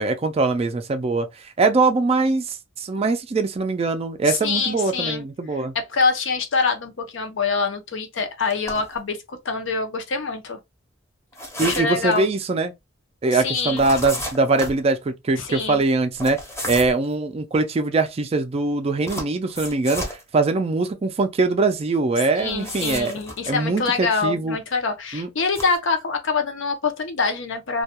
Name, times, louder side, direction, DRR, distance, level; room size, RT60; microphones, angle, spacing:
voice 1, 0.0-5.7 11.6-12.7 13.2-16.4 16.7-23.1 23.5-24.6 25.1-25.3, right 3 dB, 30° right, 0.3 m, -22 dB
voice 2, 4.2-5.2 5.5-10.6 11.6-12.3 13.3-13.9 15.4-15.9 22.4-27.8, left 4 dB, 65° left, 0.6 m, -25 dB
sound 1, 8.5-9.0 11.3-12.3 13.8-14.8 16.2-17.1 19.1-20.2 22.3-23.4 25.4-25.8, left 1 dB, 15° left, 0.7 m, -32 dB
2.2 x 2.2 x 2.8 m
head